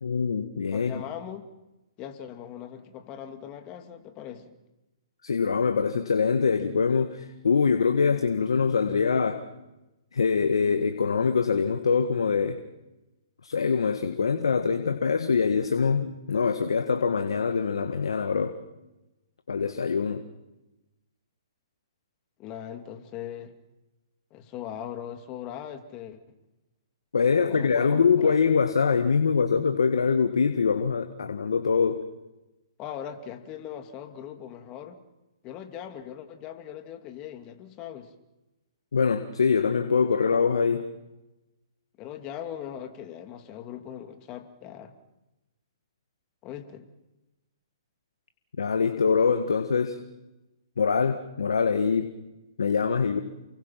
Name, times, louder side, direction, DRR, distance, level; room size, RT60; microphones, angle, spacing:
voice 1, 0.0-1.0 5.2-9.4 10.1-12.6 13.4-18.5 19.5-20.2 27.1-32.0 38.9-40.8 48.6-50.0 50.8-52.1 52.6-53.2, left 5 dB, 80° left, 8 dB, 1.7 m, -24 dB
voice 2, 0.7-1.5 2.0-4.5 22.4-23.5 24.3-26.2 27.2-28.4 32.8-35.0 35.4-38.1 42.0-44.9 46.4-46.9, left 10 dB, 30° left, 7 dB, 2.6 m, -40 dB
29.5 x 23.5 x 5.9 m, 1.0 s
hypercardioid pair, 130°, 3 cm